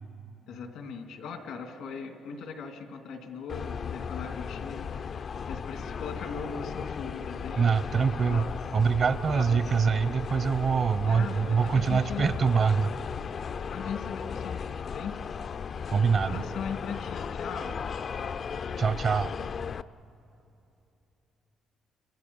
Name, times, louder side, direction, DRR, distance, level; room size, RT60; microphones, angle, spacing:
voice 1, 0.5-7.7 8.3-8.5 9.3-9.6 11.0-12.3 13.6-15.1 16.2-17.8, left 6 dB, 85° left, 4 dB, 2.8 m, -39 dB
sound 1, 3.5-19.8, left 6 dB, 50° left, 0.5 m, -36 dB
voice 2, 7.6-8.5 8.7-12.9 15.9-16.4 18.8-19.3, right 5 dB, 50° right, 14 dB, 0.7 m, -24 dB
30.0 x 26.5 x 5.5 m, 2.9 s
cardioid pair, 90°, 0 cm